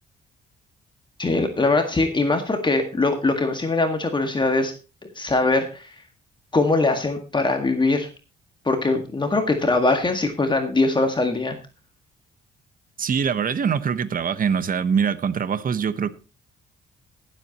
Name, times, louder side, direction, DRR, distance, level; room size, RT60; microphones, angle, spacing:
voice 1, 1.2-4.7 5.2-5.9 6.5-8.1 8.7-11.6, left 3 dB, 25° left, 1.8 m, -22 dB
voice 2, 13.0-16.1, right 7 dB, 45° right, 1.0 m, -23 dB
19.5 x 7.8 x 3.0 m
cardioid pair, 90°, 20 cm